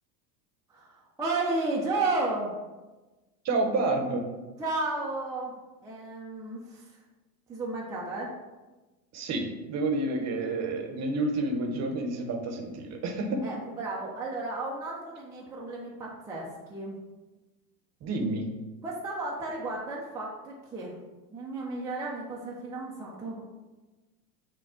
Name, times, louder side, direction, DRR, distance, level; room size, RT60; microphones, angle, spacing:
voice 1, 0.7-2.6 4.6-5.5 5.8-6.8 7.5-8.3 13.4-17.0 18.8-21.0 21.3-23.4, right 2 dB, 10° right, -5 dB, 0.3 m, -33 dB
voice 2, 3.4-4.3 9.1-13.5 18.0-18.5, right 2 dB, 35° right, 4 dB, 0.7 m, -29 dB
6.2 x 2.2 x 3.6 m, 1.2 s
hypercardioid pair, 105°, 49 cm